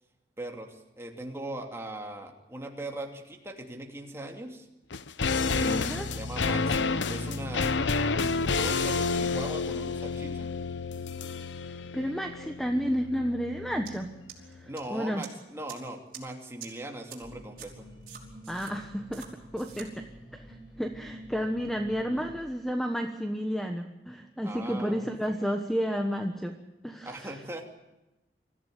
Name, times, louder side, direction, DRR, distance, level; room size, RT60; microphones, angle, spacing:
voice 1, 0.4-4.7 5.5-7.7 8.6-10.5 14.7-17.9 24.4-25.1 27.0-27.7, right 1 dB, 15° right, 2 dB, 2.8 m, -40 dB
sound 1, 4.9-14.3 14.5-14.6, left 4 dB, 85° left, 0.8 m, -30 dB
voice 2, 5.6-6.1 11.7-14.1 14.4-15.2 18.5-20.0 20.3-26.6 26.8-27.4, equal, ahead, 4 dB, 1.2 m, -32 dB
sound 2, 13.9-14.0 14.3-14.8 15.2-15.3 15.7-15.8 16.1-16.2 16.6-16.7 17.1-17.2 17.6-17.7 18.1-18.7 19.1-19.3 19.6-19.9, right 10 dB, 55° right, 5.2 m, -44 dB
sound 3, 17.2-22.4, equal, 25° left, 6.0 m, -48 dB
25.0 x 15.0 x 9.4 m, 1.0 s
head